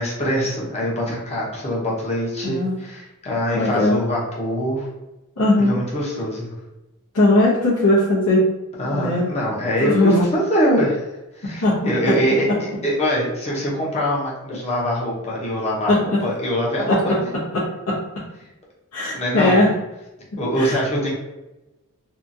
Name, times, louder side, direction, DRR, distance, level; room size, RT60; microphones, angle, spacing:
voice 1, 0.0-4.9 5.6-6.5 8.8-11.1 11.4-15.9 16.2-17.2 19.1-19.6 20.4-21.1, equal, 30° left, -4 dB, 0.8 m, -23 dB
voice 2, 2.4-2.7 3.5-4.0 5.4-5.8 7.1-8.4 8.9-9.3 9.8-10.1 11.4-11.8 12.0-12.1 15.9-16.2 16.9-17.2 17.5-18.0 18.9-19.7 20.6-20.8, left 1 dB, 85° left, -10 dB, 0.8 m, -18 dB
2.8 x 2.3 x 2.6 m, 1.0 s
head